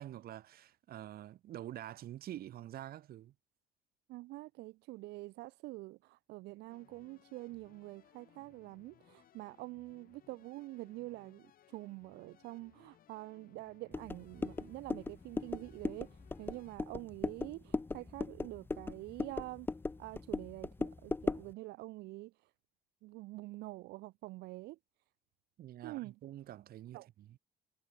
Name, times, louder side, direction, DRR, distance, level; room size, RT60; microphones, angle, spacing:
voice 1, 0.0-3.3 25.6-27.4, right 12 dB, 65° right, 2.4 m, -47 dB
voice 2, 4.1-19.7 20.0-22.3 23.0-24.8 25.8-26.1 26.9-27.1, right 20 dB, 80° right, 0.6 m, -46 dB
sound 1, 6.7-16.8, left 11 dB, 60° left, 5.6 m, -65 dB
sound 2, 13.9-21.5, left 3 dB, 15° left, 0.5 m, -39 dB
cardioid pair, 110°, 17 cm